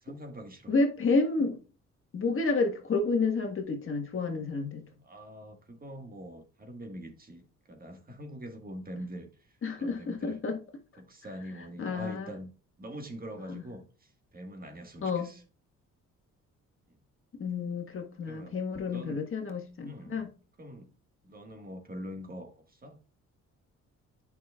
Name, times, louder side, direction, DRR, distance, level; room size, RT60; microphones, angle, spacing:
voice 1, 0.0-0.7 5.0-10.4 11.0-12.5 12.8-15.4 18.3-18.6 18.9-19.3 19.9-20.3 20.6-20.9 21.2-23.0, equal, 30° right, 1.7 m, -44 dB
voice 2, 0.7-1.6 2.1-4.8 9.6-10.6 11.8-12.3 13.5-13.6 15.0-15.3 17.4-20.3, left 3 dB, 45° left, 1.6 m, -30 dB
9.1 x 6.0 x 2.4 m
cardioid pair, 90°, 30 cm